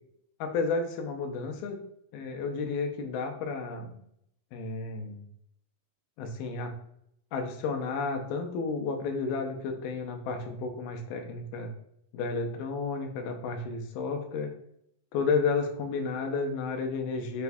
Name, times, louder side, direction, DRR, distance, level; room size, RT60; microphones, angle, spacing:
voice 1, 0.4-1.8 2.1-4.0 4.5-5.2 6.2-6.7 7.3-11.7 12.1-14.5 15.1-17.4, left 4 dB, 80° left, 3 dB, 2.1 m, -32 dB
6.7 x 2.2 x 2.6 m, 0.72 s
omnidirectional pair, 4.0 m